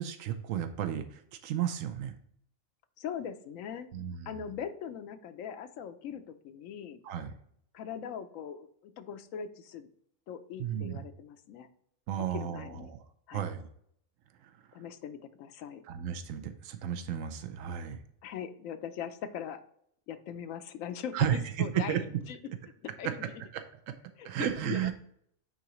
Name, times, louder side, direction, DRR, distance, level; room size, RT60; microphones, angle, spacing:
voice 1, 0.0-2.1 3.9-4.4 7.0-7.3 10.6-11.0 12.1-13.0 13.3-13.7 14.4-14.5 15.9-18.0 21.1-22.0 23.0-23.1 23.5-23.9 24.2-24.9, right 10 dB, 85° right, 8 dB, 1.0 m, -33 dB
voice 2, 3.0-3.9 4.3-7.0 7.7-9.9 10.3-11.7 12.3-12.9 13.3-13.5 14.7-15.8 18.2-19.6 20.1-22.4 22.8-23.3 24.2-24.9, left 8 dB, 85° left, 9 dB, 1.0 m, -41 dB
9.2 x 3.9 x 3.0 m, 0.67 s
omnidirectional pair, 1.3 m